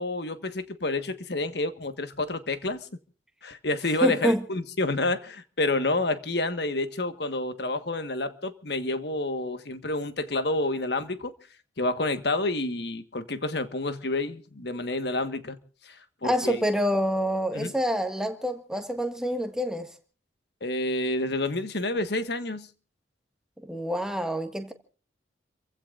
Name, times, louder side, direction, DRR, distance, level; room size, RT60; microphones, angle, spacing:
voice 1, 0.0-2.8 3.4-11.3 11.8-15.6 15.8-16.6 17.5-17.7 20.6-22.7, left 2 dB, 60° left, 1.5 m, -29 dB
voice 2, 4.0-4.4 16.2-19.9 23.6-24.7, equal, 5° right, 1.8 m, -27 dB
30.0 x 16.0 x 2.6 m
head